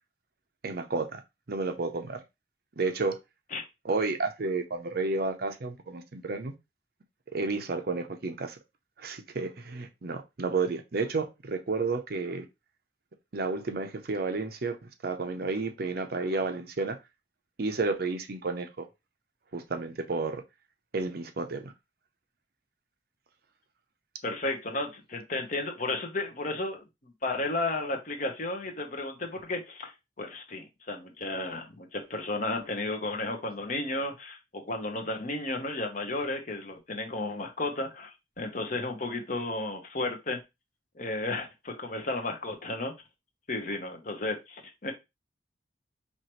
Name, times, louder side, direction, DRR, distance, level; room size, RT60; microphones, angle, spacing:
voice 1, 0.6-1.2 1.5-2.2 2.8-3.2 3.8-6.5 7.3-8.6 9.0-12.5 13.3-14.8 15.0-17.0 17.6-18.9 19.5-20.4 20.9-21.7, right 3 dB, 55° right, 0.6 m, -31 dB
voice 2, 24.2-38.1 38.4-40.4 40.9-42.9 43.5-44.9, left 2 dB, 45° left, 0.9 m, -33 dB
4.6 x 2.8 x 3.0 m
head